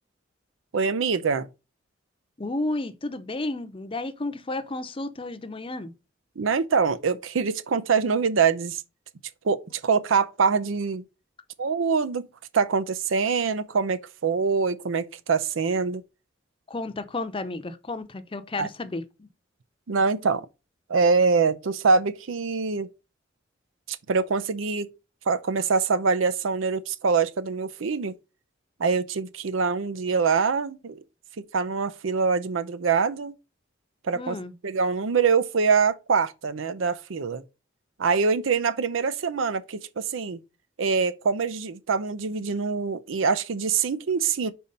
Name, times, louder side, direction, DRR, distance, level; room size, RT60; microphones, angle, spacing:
voice 1, 0.7-1.5 6.4-8.8 9.4-11.0 11.6-12.3 12.5-16.0 18.6-18.7 19.9-20.5 20.9-22.9 23.9-24.9 25.3-28.1 28.8-31.0 31.4-33.3 34.0-34.4 34.6-37.4 38.0-40.4 40.8-44.5, right 5 dB, 90° right, 0.6 m, -24 dB
voice 2, 2.4-5.9 16.7-19.3 34.1-34.5, left 2 dB, 30° left, 0.6 m, -32 dB
5.5 x 4.2 x 5.2 m
head